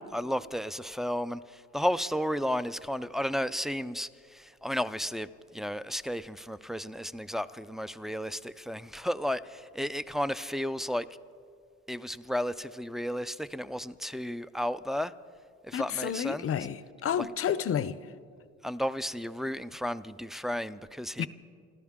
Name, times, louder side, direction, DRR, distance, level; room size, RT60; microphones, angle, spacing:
voice 1, 0.1-11.1 11.9-15.1 15.6-16.5 17.2-17.3 18.6-21.3, equal, ahead, 0.4 m, -33 dB
voice 2, 15.7-18.0 21.2-21.3, left 9 dB, 50° left, 0.6 m, -30 dB
27.5 x 13.5 x 3.6 m
cardioid pair, 90°, 30 cm